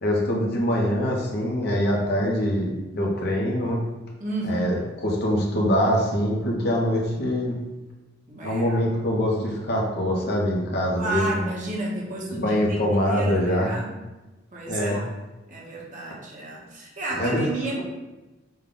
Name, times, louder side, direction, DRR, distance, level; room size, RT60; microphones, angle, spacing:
voice 1, 0.0-3.8 4.5-7.6 8.4-11.5 12.3-13.7 14.7-15.0 17.2-17.4, equal, 55° left, -2 dB, 0.9 m, -24 dB
voice 2, 4.2-4.9 8.3-8.8 11.0-12.8 13.0-13.9 14.5-15.0 15.5-17.8, right 2 dB, 40° right, -3 dB, 1.0 m, -32 dB
5.4 x 2.3 x 3.8 m, 1.1 s
head